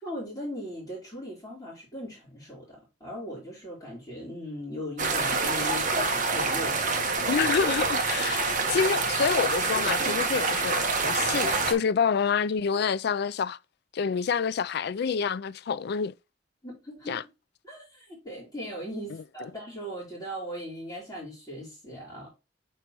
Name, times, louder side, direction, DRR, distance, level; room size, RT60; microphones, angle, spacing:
voice 1, 0.0-7.2 16.6-17.2 17.6-22.3, equal, 20° left, 3.3 m, -39 dB
sound 1, 5.0-11.7, right 4 dB, 45° right, 1.2 m, -26 dB
voice 2, 7.3-13.6 13.9-16.1 17.1-17.2, left 6 dB, 60° left, 0.4 m, -27 dB
6.7 x 4.7 x 2.9 m
head